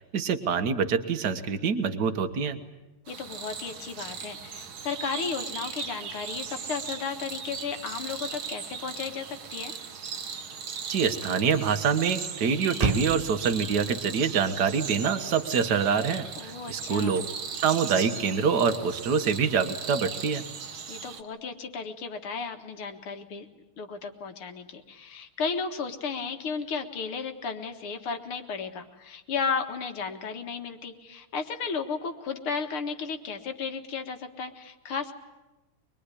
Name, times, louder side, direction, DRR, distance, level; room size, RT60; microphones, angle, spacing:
voice 1, 0.1-2.6 10.9-17.3 17.6-20.4, right 6 dB, 50° right, 9 dB, 1.9 m, -25 dB
voice 2, 3.1-9.7 16.4-17.2 20.9-23.5 23.8-35.1, left 5 dB, 75° left, 6 dB, 2.5 m, -34 dB
sound 1, 3.1-21.2, right 6 dB, 70° right, 2.1 m, -38 dB
Motor vehicle (road), 8.6-17.3, right 4 dB, 30° right, 0.6 m, -38 dB
23.5 x 22.5 x 10.0 m, 1.1 s
omnidirectional pair, 2.4 m